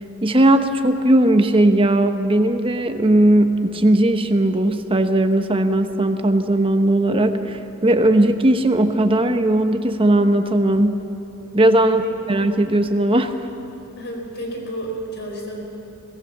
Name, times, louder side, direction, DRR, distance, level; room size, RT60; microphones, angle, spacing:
voice 1, 0.2-11.0 11.5-12.0 12.3-13.3, right 1 dB, 25° right, 7 dB, 1.0 m, -17 dB
voice 2, 14.0-15.6, right 1 dB, 50° left, 1 dB, 4.6 m, -31 dB
23.0 x 18.0 x 7.4 m, 2.8 s
head